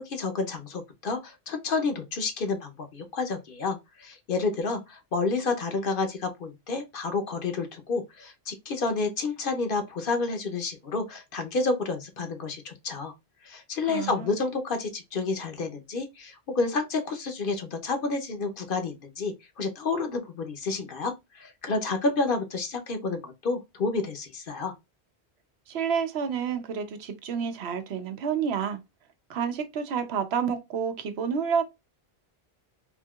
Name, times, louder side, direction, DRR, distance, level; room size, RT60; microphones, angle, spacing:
voice 1, 0.0-13.1 13.4-24.7, left 3 dB, 60° left, 0.8 m, -30 dB
voice 2, 13.9-14.3 25.7-28.8 29.3-31.6, right 7 dB, 75° right, 0.9 m, -29 dB
3.5 x 2.7 x 2.2 m
omnidirectional pair, 1.1 m